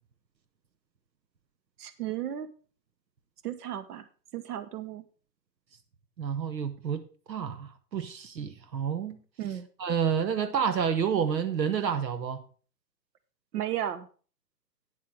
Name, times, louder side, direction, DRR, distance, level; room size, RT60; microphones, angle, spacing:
voice 1, 1.8-2.5 3.4-4.1 4.3-5.0 9.4-9.7 13.5-14.1, right 11 dB, 65° right, 1.3 m, -34 dB
voice 2, 6.2-7.0 7.3-9.2 9.8-12.4, right 7 dB, 85° right, 1.2 m, -29 dB
9.6 x 7.5 x 4.6 m
hypercardioid pair, 135°, 49 cm